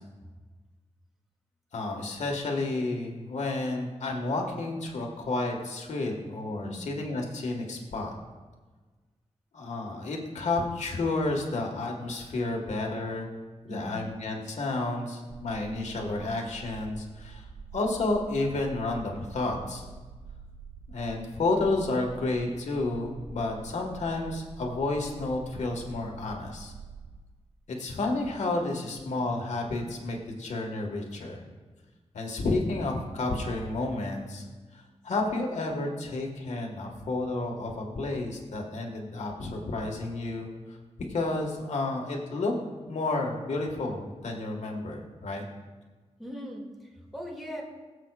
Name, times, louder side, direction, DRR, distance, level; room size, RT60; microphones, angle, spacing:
voice 1, 1.7-8.1 9.5-13.3 13.6-17.5 17.7-19.8 20.9-26.7 27.7-31.4 32.1-34.4 34.7-40.8 41.1-42.5 42.9-45.4, left 2 dB, 85° left, 1 dB, 1.6 m, -31 dB
voice 2, 13.7-14.1 46.2-47.6, equal, ahead, -2 dB, 2.4 m, -40 dB
sound 1, 15.3-27.2, right 5 dB, 30° right, 0.5 m, -46 dB
22.0 x 7.5 x 2.4 m, 1.3 s
wide cardioid pair, 140°, 12 cm